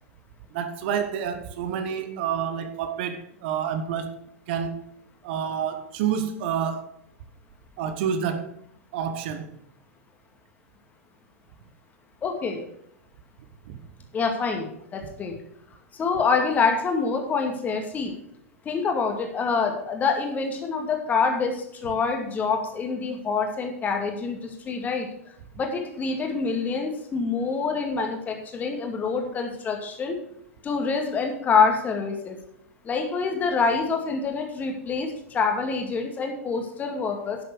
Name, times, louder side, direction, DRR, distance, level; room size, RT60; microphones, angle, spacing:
voice 1, 0.5-4.1 4.5-4.8 5.2-6.9 7.8-8.6 8.9-9.6 13.7-13.8 28.0-28.1, right 8 dB, 45° right, 1.1 m, -28 dB
voice 2, 12.2-12.7 14.1-15.3 15.9-18.1 18.7-25.1 25.6-30.2 30.6-32.4 32.8-37.4, left 5 dB, 20° left, 2.2 m, -26 dB
11.0 x 7.7 x 4.8 m
figure-of-eight pair, 95°, 8 cm